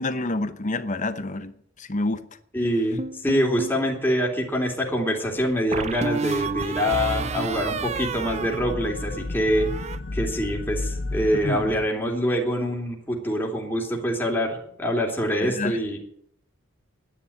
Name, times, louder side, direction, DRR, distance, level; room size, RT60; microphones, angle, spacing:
voice 1, 0.0-1.5 1.8-2.3 11.3-11.7 15.4-15.8, left 2 dB, 40° left, 0.9 m, -28 dB
voice 2, 2.5-9.7 10.1-16.0, equal, 10° left, 2.8 m, -25 dB
sound 1, 3.0-3.8 5.7-9.2 9.5-10.0, right 4 dB, 35° right, 0.6 m, -30 dB
sound 2, 5.5-11.9, left 2 dB, 70° left, 0.9 m, -34 dB
10.5 x 10.0 x 9.9 m
head